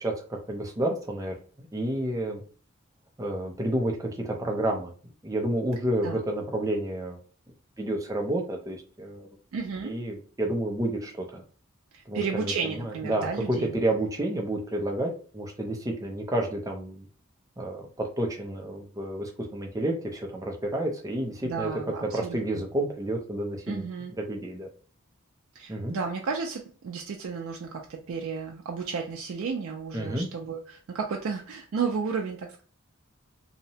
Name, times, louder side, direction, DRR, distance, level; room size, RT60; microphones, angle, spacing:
voice 1, 0.0-2.4 3.2-7.2 7.8-9.3 9.8-11.4 12.1-17.1 17.6-21.7 22.0-23.9 24.2-24.7 25.7-26.0 29.9-30.3, right 1 dB, 15° right, 1 dB, 0.5 m, -30 dB
voice 2, 9.5-10.0 11.9-13.8 21.4-22.6 23.7-24.1 25.5-32.6, right 5 dB, 85° right, 1 dB, 0.4 m, -33 dB
2.8 x 2.1 x 2.7 m, 0.41 s
head